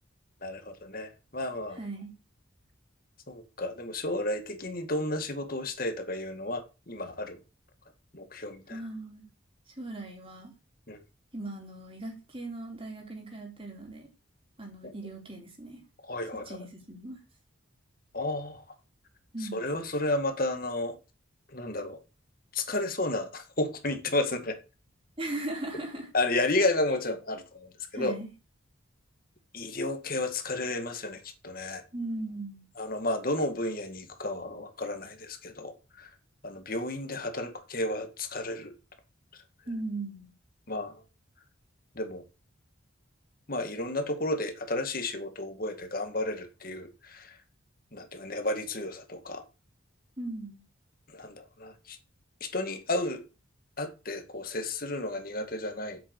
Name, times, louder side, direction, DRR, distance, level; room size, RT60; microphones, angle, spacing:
voice 1, 0.4-1.8 3.3-7.4 8.1-8.8 10.9-11.0 16.1-16.5 18.1-18.6 19.5-21.0 21.5-22.0 22.5-24.6 26.1-28.2 29.5-31.8 32.8-36.1 36.4-38.7 40.7-41.0 42.0-42.2 43.5-47.4 47.9-49.4 51.1-52.0 52.4-53.2 53.8-56.0, left 2 dB, 45° left, 2.0 m, -32 dB
voice 2, 1.7-2.1 8.7-9.3 9.7-10.5 11.3-14.1 14.6-15.8 16.3-17.2 19.3-19.6 25.2-26.1 27.9-28.3 31.9-32.6 39.7-40.3 50.2-50.6, right 2 dB, 25° right, 3.8 m, -38 dB
8.0 x 7.2 x 8.3 m
head